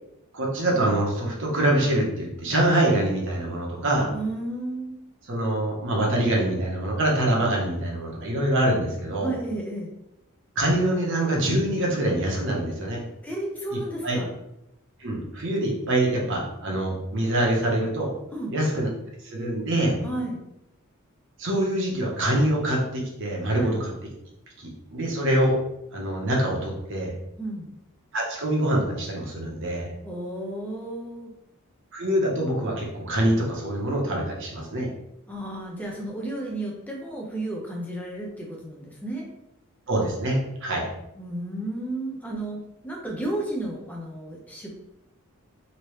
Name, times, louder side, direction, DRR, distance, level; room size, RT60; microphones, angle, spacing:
voice 1, 0.3-4.1 5.3-9.3 10.6-13.0 14.0-14.2 15.0-18.1 18.5-18.9 19.2-20.0 21.4-23.9 24.6-25.6 25.9-27.1 28.1-29.9 31.9-34.9 39.9-40.9, right 1 dB, 60° right, -1 dB, 0.9 m, -25 dB
voice 2, 4.1-5.0 9.2-9.9 13.2-14.3 18.3-18.5 20.0-20.4 23.6-23.8 27.4-27.7 30.0-31.3 35.3-39.3 41.2-44.8, right 1 dB, 5° left, -2 dB, 0.7 m, -32 dB
3.2 x 2.9 x 3.0 m, 0.84 s
head